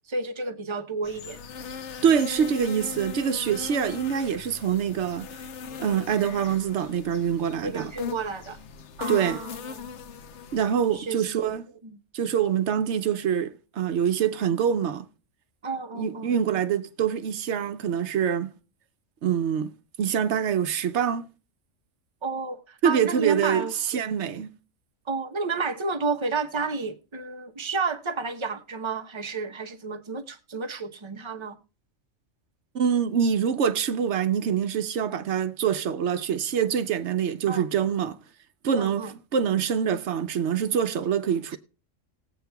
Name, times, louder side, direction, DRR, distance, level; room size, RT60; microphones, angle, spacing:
voice 1, 0.1-1.4 7.6-8.6 9.0-9.9 10.9-11.5 11.8-12.0 15.6-16.3 22.2-23.7 25.1-31.6 37.5-37.6 38.8-39.1, right 4 dB, 25° right, 0.8 m, -31 dB
sound 1, 1.0-11.0, left 7 dB, 65° left, 1.0 m, -39 dB
voice 2, 2.0-5.3 5.8-7.9 9.1-9.4 10.5-11.6 12.1-15.1 16.0-18.5 19.2-19.7 20.0-21.3 22.8-24.5 32.7-38.2 38.6-41.6, right 8 dB, 65° right, 0.9 m, -25 dB
19.5 x 8.1 x 2.3 m
omnidirectional pair, 1.3 m